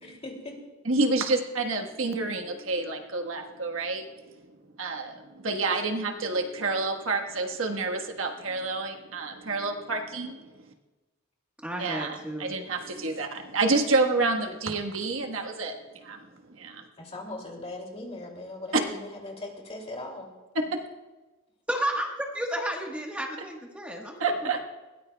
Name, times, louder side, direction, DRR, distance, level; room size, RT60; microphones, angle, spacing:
voice 1, 0.0-0.5 17.0-20.3, left 2 dB, 30° left, 1 dB, 2.6 m, -39 dB
voice 2, 0.8-4.0 4.8-10.5 11.8-15.8 16.0-16.2 16.5-16.8 18.7-18.8 20.5-20.8 24.2-24.6, right 3 dB, 75° right, 3 dB, 1.3 m, -28 dB
voice 3, 11.6-12.5 21.7-22.1 22.3-24.3, right 1 dB, 5° right, 0 dB, 1.3 m, -32 dB
21.0 x 17.5 x 2.3 m, 1.2 s
head